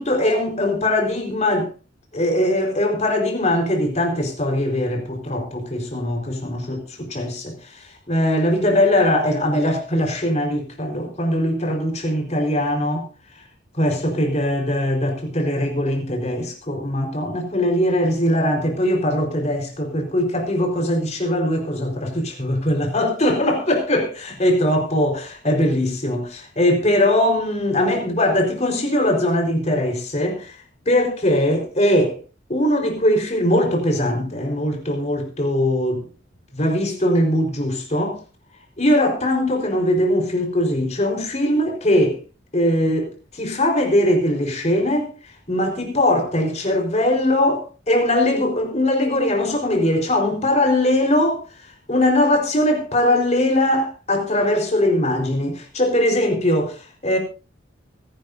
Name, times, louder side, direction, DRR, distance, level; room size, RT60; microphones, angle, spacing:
voice 1, 0.0-1.7 2.1-13.0 13.7-30.6 30.9-32.2 32.5-36.0 36.5-38.2 38.8-42.2 42.5-45.1 45.5-51.4 51.9-57.2, left 1 dB, 35° left, 4.4 m, -21 dB
24.5 x 11.5 x 2.7 m
head